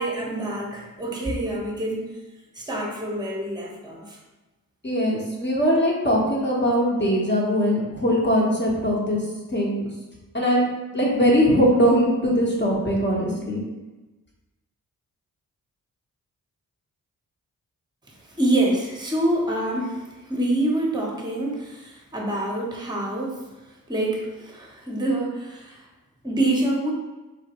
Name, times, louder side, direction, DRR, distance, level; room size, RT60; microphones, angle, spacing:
voice 1, 0.0-2.2 2.5-4.2 18.4-23.3 23.9-25.8 26.2-26.9, right 1 dB, 10° right, -2 dB, 0.9 m, -26 dB
voice 2, 4.8-9.2 9.5-9.9 10.3-10.7 10.9-13.6, equal, 30° left, -4 dB, 1.1 m, -21 dB
3.3 x 2.2 x 2.9 m, 1.1 s
cardioid pair, 50°, 35 cm